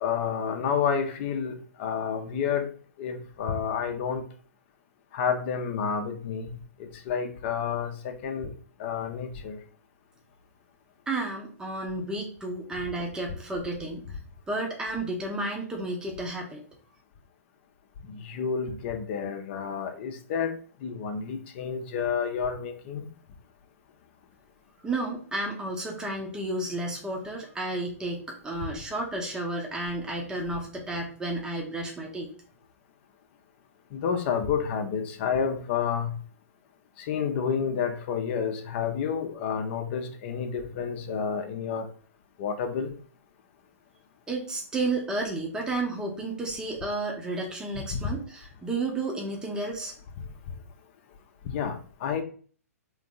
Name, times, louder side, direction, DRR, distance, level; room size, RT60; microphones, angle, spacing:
voice 1, 0.0-2.7 3.0-4.2 5.1-6.5 6.8-8.5 8.8-9.6 18.0-23.0 33.9-36.2 37.0-41.9 42.4-42.9 47.9-48.1 51.4-52.2, left 7 dB, 45° left, 5 dB, 0.7 m, -30 dB
voice 2, 11.1-14.1 14.5-16.6 24.8-32.3 44.3-49.9, right 2 dB, 10° right, 0 dB, 0.9 m, -32 dB
3.7 x 3.1 x 3.6 m, 0.42 s
figure-of-eight pair, 120°, 8 cm